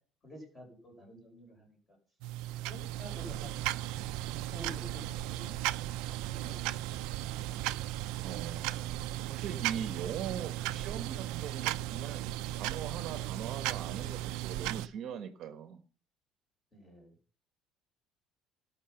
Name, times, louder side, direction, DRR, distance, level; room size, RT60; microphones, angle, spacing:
voice 1, 0.2-2.0 2.7-3.6 3.9-4.1 4.5-5.7 6.2-7.7 16.7-17.1, equal, 15° left, 2 dB, 5.2 m, -50 dB
sound 1, 2.2-14.9, right 15 dB, 75° right, 0.6 m, -36 dB
voice 2, 8.2-9.0 9.3-15.8, right 8 dB, 40° right, 7 dB, 1.2 m, -41 dB
17.5 x 6.3 x 5.9 m, 0.41 s
cardioid pair, 175°, 0 cm